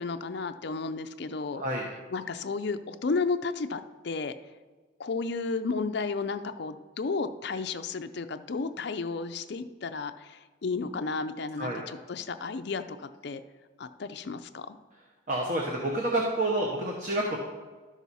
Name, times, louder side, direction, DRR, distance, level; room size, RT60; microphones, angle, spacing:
voice 1, 0.0-1.6 2.1-4.3 5.0-13.0 13.2-13.4 13.8-14.8, left 4 dB, 55° left, 9 dB, 0.4 m, -33 dB
voice 2, 1.5-1.9 11.6-11.8 15.3-17.4, right 1 dB, 35° right, -1 dB, 1.0 m, -29 dB
12.5 x 6.1 x 4.1 m, 1.4 s
head